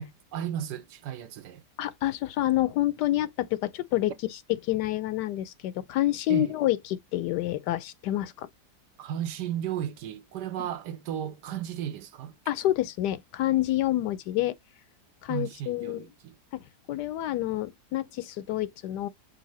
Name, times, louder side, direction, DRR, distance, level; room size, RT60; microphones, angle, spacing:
voice 1, 0.0-1.6 6.3-6.6 9.0-12.3 15.3-16.4, right 10 dB, 85° right, 1.4 m, -34 dB
voice 2, 1.8-4.1 4.6-8.5 12.5-14.5 15.2-16.0 16.9-19.1, left 14 dB, 90° left, 1.2 m, -28 dB
5.5 x 2.6 x 3.1 m
omnidirectional pair, 1.8 m